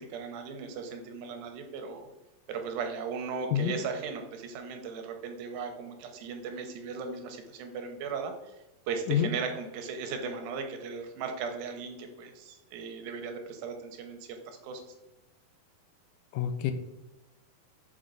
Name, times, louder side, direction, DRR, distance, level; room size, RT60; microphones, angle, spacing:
voice 1, 0.0-2.1 2.5-8.6 8.9-14.8, right 5 dB, 90° right, 5 dB, 2.6 m, -37 dB
voice 2, 16.3-16.7, left 10 dB, 85° left, 8 dB, 2.3 m, -27 dB
5.8 x 5.2 x 3.8 m, 0.99 s
omnidirectional pair, 4.1 m